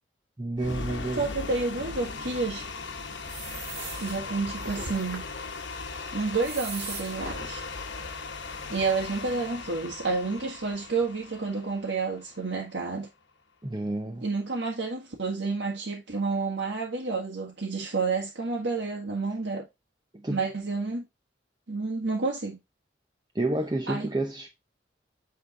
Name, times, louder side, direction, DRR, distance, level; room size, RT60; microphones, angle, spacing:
voice 1, 0.4-1.3 13.6-14.3 20.1-20.4 23.3-24.5, right 2 dB, 20° right, 0.7 m, -30 dB
sound 1, 0.6-12.7, left 4 dB, 90° left, 1.0 m, -38 dB
voice 2, 1.1-2.7 4.0-5.2 6.1-7.6 8.7-13.1 14.2-19.6 20.3-21.1 21.7-22.6 23.9-24.1, right 4 dB, 80° right, 1.7 m, -30 dB
sound 2, 2.2-7.5, right 4 dB, 60° right, 2.1 m, -42 dB
8.8 x 3.8 x 3.7 m
head